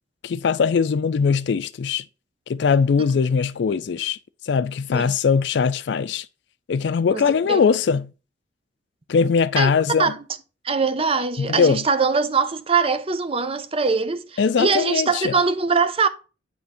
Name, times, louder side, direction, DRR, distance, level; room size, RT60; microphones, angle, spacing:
voice 1, 0.2-2.1 2.5-4.2 4.4-6.3 6.7-8.1 9.1-10.1 11.4-11.9 14.4-15.3, left 5 dB, 60° left, 0.4 m, -21 dB
voice 2, 10.6-16.1, right 4 dB, 30° right, 0.6 m, -22 dB
9.3 x 3.5 x 4.3 m
head